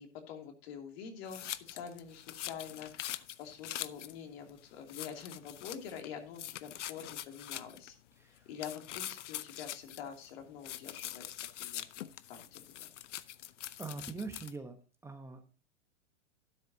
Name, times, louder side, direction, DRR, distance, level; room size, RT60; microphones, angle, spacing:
voice 1, 0.0-8.0 8.3-12.9, left 7 dB, 55° left, 4 dB, 2.8 m, -46 dB
sound 1, 1.3-4.1 4.5-4.6 4.9-6.1 6.3-7.9 8.6-10.3 10.6-14.5, left 13 dB, 80° left, 0.8 m, -43 dB
voice 2, 8.2-8.5 13.8-14.8 15.0-15.4, right 4 dB, 5° right, 5 dB, 1.0 m, -43 dB
12.0 x 10.0 x 2.8 m, 0.35 s
hypercardioid pair, 125°, 36 cm